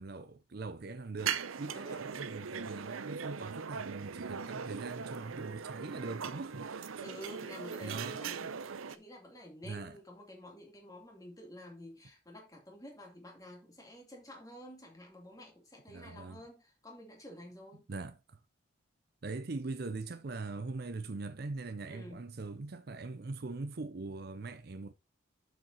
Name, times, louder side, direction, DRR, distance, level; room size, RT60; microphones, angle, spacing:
voice 1, 0.0-7.0 7.8-8.2 9.6-10.0 15.9-16.4 17.7-18.4 19.2-24.9, right 3 dB, 50° right, 0.6 m, -42 dB
sound 1, 1.2-9.0, right 6 dB, 90° right, 0.7 m, -40 dB
voice 2, 1.7-2.1 7.0-17.9 21.9-22.2, equal, 15° left, 2.6 m, -50 dB
7.5 x 6.0 x 4.0 m
head